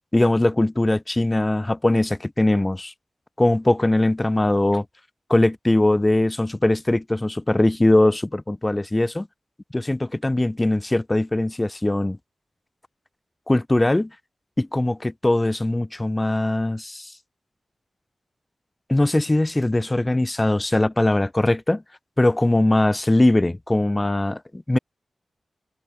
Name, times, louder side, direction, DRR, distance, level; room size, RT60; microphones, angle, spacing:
voice 1, 0.1-2.9 3.4-4.8 5.3-9.3 9.7-12.2 13.5-14.1 14.6-17.1 18.9-21.8 22.2-24.8, left 1 dB, 15° left, 5.9 m, -21 dB
wide cardioid pair, 160°, 0 cm